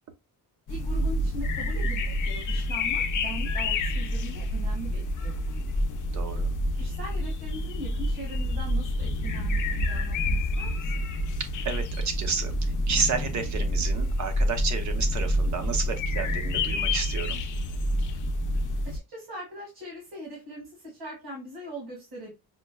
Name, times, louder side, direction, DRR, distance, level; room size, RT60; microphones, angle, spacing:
sound 1, 0.7-19.0, left 1 dB, 50° left, 0.6 m, -28 dB
voice 1, 0.7-5.6 6.8-11.0 18.8-22.3, equal, 75° right, 1.9 m, -41 dB
voice 2, 6.1-6.5 11.6-17.4, right 5 dB, 45° right, 0.8 m, -31 dB
5.8 x 2.1 x 2.2 m
cardioid pair, 165°, 40 cm